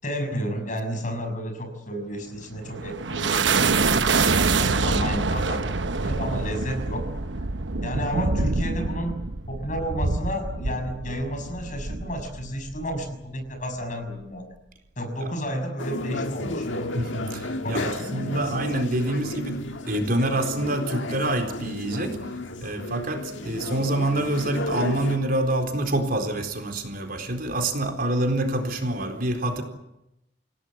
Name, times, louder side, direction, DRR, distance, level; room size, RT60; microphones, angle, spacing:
voice 1, 0.0-7.1 7.8-14.5 15.0-16.9 17.6-18.4, equal, 40° left, 6 dB, 6.3 m, -32 dB
sound 1, 2.3-13.1, right 4 dB, 75° right, 1.1 m, -26 dB
sound 2, 15.8-25.2, left 2 dB, 85° left, 1.7 m, -33 dB
voice 2, 16.9-22.2 22.6-29.6, right 1 dB, 50° right, 4 dB, 4.1 m, -26 dB
29.0 x 17.0 x 9.3 m, 0.88 s
head